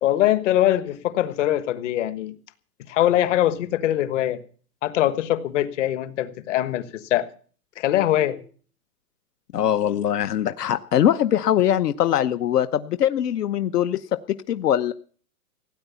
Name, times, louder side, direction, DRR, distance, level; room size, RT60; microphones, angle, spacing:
voice 1, 0.0-2.3 2.9-4.4 4.8-7.3 7.8-8.4, left 13 dB, 50° left, 1.4 m, -22 dB
voice 2, 9.5-14.2 14.5-14.9, left 10 dB, 75° left, 1.1 m, -22 dB
17.0 x 9.4 x 7.0 m
hypercardioid pair, 160°, 47 cm